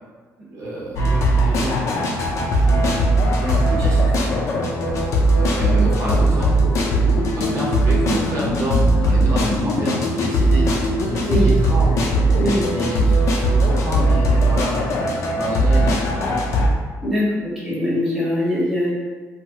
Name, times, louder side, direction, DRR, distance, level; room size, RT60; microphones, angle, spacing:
voice 1, 0.4-4.4 5.4-6.5 7.0-12.1 12.7-14.9 15.3-16.7, right 1 dB, 60° right, -5 dB, 0.7 m, -29 dB
sound 1, 1.0-16.7, right 1 dB, 60° left, 0.4 m, -19 dB
voice 2, 17.0-18.9, equal, 5° right, -8 dB, 0.9 m, -22 dB
2.8 x 2.3 x 2.8 m, 1.4 s
cardioid pair, 150°, 6 cm